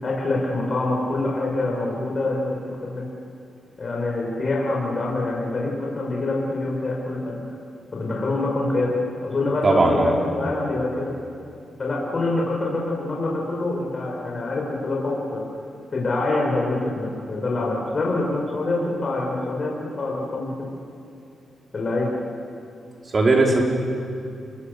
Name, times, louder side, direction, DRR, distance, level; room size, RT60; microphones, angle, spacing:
voice 1, 0.0-2.5 2.8-3.1 3.8-7.5 7.9-11.1 11.8-15.4 15.9-20.7 21.7-22.1, left 2 dB, 40° left, -2 dB, 5.9 m, -25 dB
voice 2, 9.6-10.1 23.1-23.6, right 2 dB, 35° right, 0 dB, 4.6 m, -17 dB
30.0 x 22.0 x 6.9 m, 2.6 s
cardioid pair, 105°, 0 cm